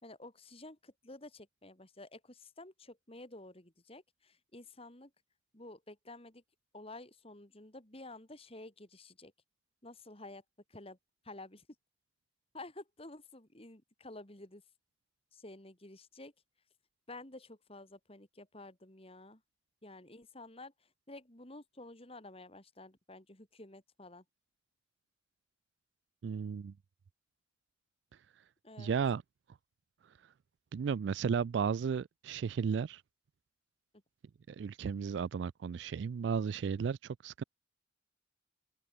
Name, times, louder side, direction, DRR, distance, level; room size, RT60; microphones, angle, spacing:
voice 1, 0.0-5.1 5.5-6.4 6.7-9.3 9.8-10.4 10.7-11.0 11.2-11.7 12.5-14.6 15.3-16.3 17.1-19.4 19.8-24.2 28.6-28.9, left 2 dB, 30° left, 3.2 m, -51 dB
voice 2, 26.2-26.7 28.8-29.2 30.7-33.0 34.5-37.4, right 6 dB, 65° right, 0.3 m, -34 dB
open air
head